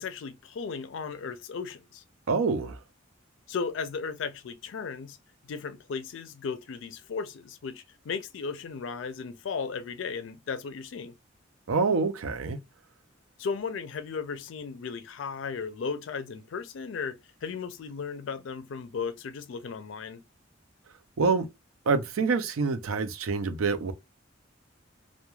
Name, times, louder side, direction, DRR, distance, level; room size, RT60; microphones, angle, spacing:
voice 1, 0.0-2.0 3.5-5.2 5.5-11.1 13.4-20.2, left 5 dB, 65° left, 0.4 m, -35 dB
voice 2, 2.3-2.8 11.7-12.6 21.2-21.5 21.9-23.9, right 4 dB, 85° right, 0.5 m, -26 dB
2.3 x 2.1 x 3.0 m
head